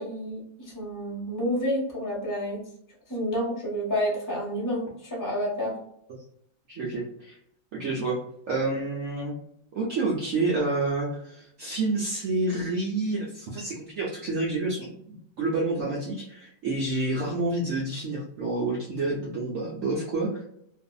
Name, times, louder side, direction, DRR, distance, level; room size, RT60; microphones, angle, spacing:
voice 1, 0.0-2.7 3.1-5.8, equal, 15° left, -5 dB, 0.8 m, -29 dB
voice 2, 6.7-7.4 7.7-8.2 8.5-9.4 9.7-14.9 15.4-20.4, right 2 dB, 65° right, -4 dB, 0.8 m, -28 dB
2.6 x 2.5 x 2.3 m, 0.72 s
omnidirectional pair, 1.9 m